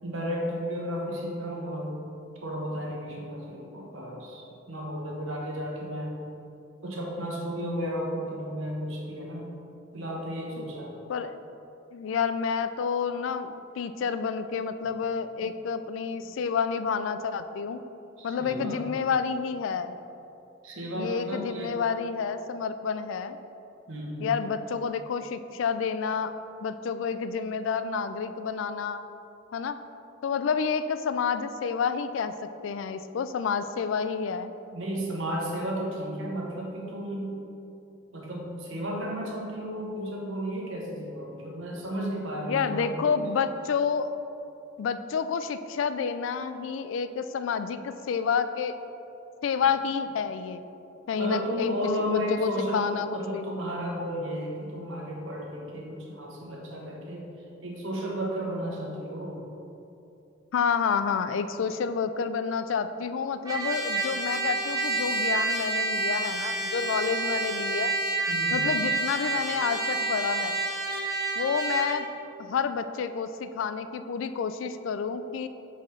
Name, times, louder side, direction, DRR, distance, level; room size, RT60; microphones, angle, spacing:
voice 1, 0.0-2.0 2.4-6.2 6.8-9.5 9.9-10.9 18.2-18.9 20.6-21.8 23.9-24.3 34.7-37.4 38.1-43.2 51.2-57.3 57.6-59.4 68.3-68.7, equal, 80° right, -2 dB, 1.2 m, -33 dB
voice 2, 11.9-17.8 18.2-19.9 20.9-23.4 24.2-26.3 26.6-29.0 29.5-29.8 30.2-34.5 42.5-44.1 44.8-48.8 49.4-50.6 51.1-51.7 52.1-53.4 60.5-67.9 68.5-70.6 71.4-72.1 72.4-75.5, left 6 dB, 70° left, 11 dB, 0.3 m, -29 dB
Trumpet, 63.5-72.0, right 3 dB, 20° right, 0.7 m, -29 dB
4.9 x 4.3 x 5.5 m, 2.8 s
head